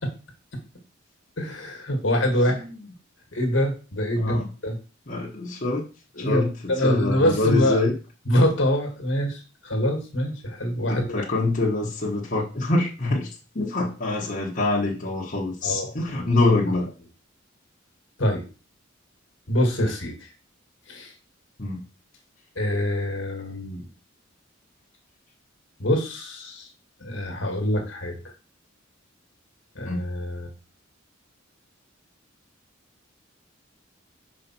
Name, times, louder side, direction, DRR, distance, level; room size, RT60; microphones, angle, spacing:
voice 1, 1.4-2.6 3.3-4.8 6.2-7.8 8.3-11.2 15.6-15.9 18.2-18.4 19.5-20.1 20.9-21.1 22.6-23.8 25.8-26.7 27.0-28.2 29.8-30.5, equal, 70° left, 3 dB, 1.8 m, -25 dB
voice 2, 4.2-4.5 5.1-5.8 6.2-7.9 10.9-13.3 13.5-16.9 21.6-21.8 29.9-30.0, left 2 dB, 40° left, -4 dB, 1.4 m, -25 dB
5.5 x 4.9 x 4.5 m, 0.34 s
head